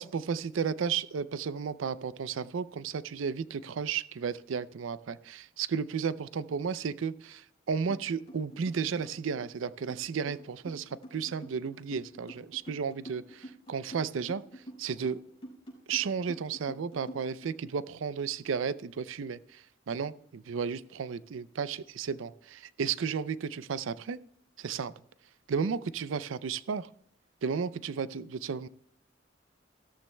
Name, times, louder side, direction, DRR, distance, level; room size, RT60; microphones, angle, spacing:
voice 1, 0.0-14.4 14.8-15.2 15.9-24.2 24.6-24.9 25.5-26.9 27.4-28.7, right 6 dB, 85° right, 16 dB, 0.4 m, -33 dB
sound 1, 7.9-8.0 8.3-17.5, right 1 dB, 30° left, 4.7 m, -46 dB
16.5 x 13.0 x 2.2 m, 0.70 s
head